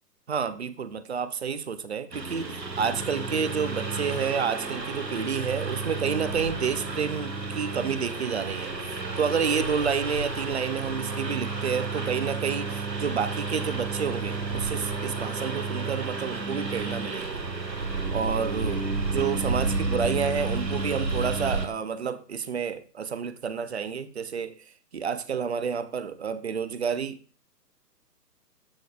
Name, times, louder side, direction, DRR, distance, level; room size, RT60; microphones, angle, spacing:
voice 1, 0.3-17.4 18.1-24.6 24.9-27.2, right 6 dB, 45° right, 0.6 m, -30 dB
Engine, 2.1-21.7, right 3 dB, 90° right, 1.4 m, -31 dB
13.5 x 4.6 x 2.3 m
figure-of-eight pair, 140°, 49 cm